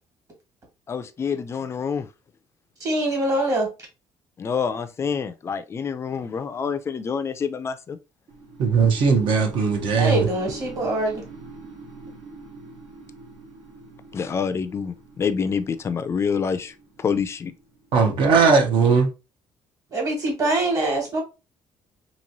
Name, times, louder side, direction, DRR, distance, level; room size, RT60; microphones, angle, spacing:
voice 1, 0.9-2.1 4.4-8.0 14.1-17.5, left 6 dB, 30° left, 0.3 m, -27 dB
voice 2, 2.8-3.7 10.0-11.2 19.9-21.2, right 1 dB, 35° right, 1.4 m, -23 dB
sound 1, 8.3-18.2, right 2 dB, 85° right, 1.4 m, -43 dB
voice 3, 8.6-10.3 17.9-19.1, right 5 dB, 65° right, 0.7 m, -18 dB
3.0 x 2.6 x 2.6 m
cardioid pair, 110°, 9 cm